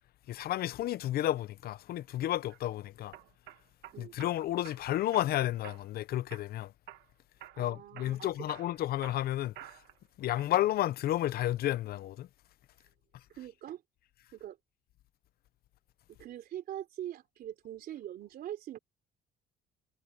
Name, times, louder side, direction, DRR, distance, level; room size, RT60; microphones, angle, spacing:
voice 1, 0.3-3.2 4.0-6.7 7.6-9.5 10.2-12.3, left 13 dB, 65° left, 0.7 m, -31 dB
sound 1, 2.2-2.6 3.1-4.3 4.6-5.3 5.6-6.0 6.3-7.1 7.4-7.6 8.0-10.0 10.4-10.9, right 14 dB, 80° right, 1.6 m, -50 dB
voice 2, 7.5-8.3 13.3-13.8 14.3-14.6 16.1-18.8, right 11 dB, 65° right, 3.3 m, -43 dB
cardioid pair, 110°, 17 cm